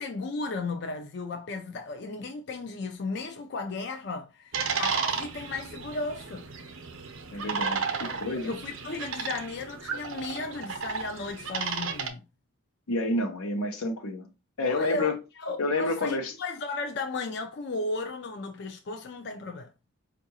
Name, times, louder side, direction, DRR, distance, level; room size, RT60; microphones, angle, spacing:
voice 1, 0.0-6.4 7.9-8.0 8.4-12.2 14.6-19.7, left 3 dB, 50° left, 0.4 m, -35 dB
sound 1, 4.5-12.1, right 5 dB, 70° right, 0.6 m, -33 dB
voice 2, 7.3-8.5 12.9-14.3 14.6-15.2 15.6-16.3, left 2 dB, 90° left, 0.8 m, -29 dB
4.6 x 2.5 x 2.8 m
head